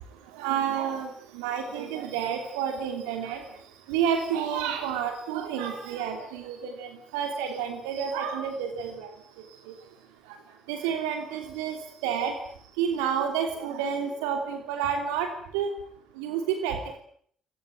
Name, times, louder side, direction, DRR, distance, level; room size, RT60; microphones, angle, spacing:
voice 1, 0.4-1.1 1.3-3.4 3.9-9.1 10.7-11.8 12.0-12.3 12.8-15.3 15.5-15.7 16.2-17.0, right 8 dB, 80° right, 6 dB, 3.0 m, -29 dB
24.5 x 19.5 x 9.2 m, 0.62 s
hypercardioid pair, 50°, 0 cm